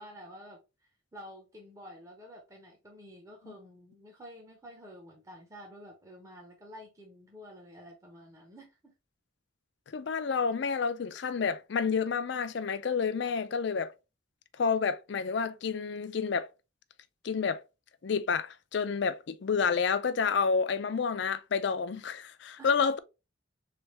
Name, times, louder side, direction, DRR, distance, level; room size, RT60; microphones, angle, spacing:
voice 1, 0.0-8.9 13.2-13.4 22.6-22.7, equal, 15° right, 0.7 m, -50 dB
voice 2, 9.9-13.9 14.6-16.5 17.2-17.6 18.0-23.0, left 5 dB, 55° left, 0.4 m, -29 dB
3.5 x 3.3 x 3.0 m
head